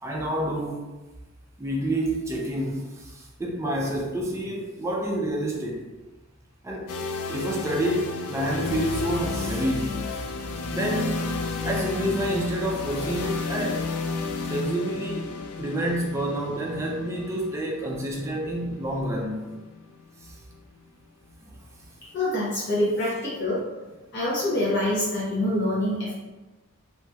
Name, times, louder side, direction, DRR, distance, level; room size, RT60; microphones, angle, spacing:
voice 1, 0.0-1.0 1.6-5.9 6.6-7.0 7.3-10.1 10.7-11.4 11.6-13.9 14.5-15.3 15.6-19.5 20.2-20.3 21.4-21.5, right 1 dB, 15° right, -1 dB, 0.3 m, -28 dB
sound 1, 6.9-20.7, left 4 dB, 80° left, 0.3 m, -33 dB
sound 2, 8.6-16.7, right 1 dB, 50° right, 0.7 m, -41 dB
voice 2, 22.1-23.6 24.1-26.1, left 1 dB, 50° left, -9 dB, 0.8 m, -25 dB
3.0 x 2.8 x 2.2 m, 1.1 s
head